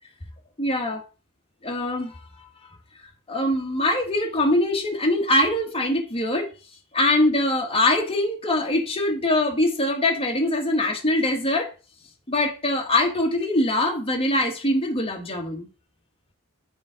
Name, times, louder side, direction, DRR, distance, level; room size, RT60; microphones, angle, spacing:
voice 1, 0.6-1.0 1.6-2.1 3.3-6.5 6.9-11.7 12.3-15.7, left 1 dB, 25° left, 1.6 m, -23 dB
7.3 x 3.9 x 5.1 m
head